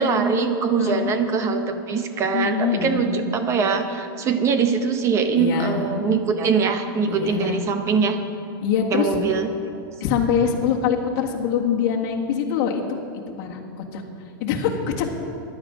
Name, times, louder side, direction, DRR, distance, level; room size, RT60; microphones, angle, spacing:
voice 1, 0.0-8.2 8.9-9.5, right 5 dB, 25° right, 7 dB, 0.7 m, -22 dB
voice 2, 0.8-1.1 2.3-3.1 5.4-6.0 7.1-7.6 8.6-9.1 10.0-12.8 13.4-14.0 14.4-15.1, left 7 dB, 45° left, 0 dB, 1.6 m, -24 dB
14.5 x 10.5 x 5.0 m, 2.5 s
supercardioid pair, 150°, 12 cm